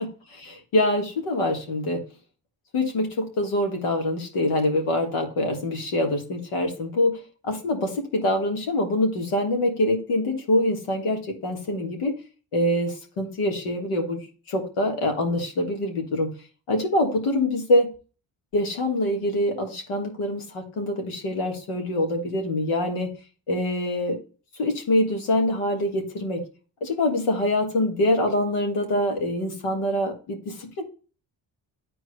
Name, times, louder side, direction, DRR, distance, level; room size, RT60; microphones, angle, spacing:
voice 1, 0.0-2.0 2.7-12.1 12.5-16.3 16.7-17.9 18.5-23.1 23.5-24.2 24.6-26.4 26.8-30.8, left 1 dB, 80° left, 3 dB, 1.6 m, -25 dB
10.0 x 4.7 x 2.2 m, 0.36 s
supercardioid pair, 50°, 50 cm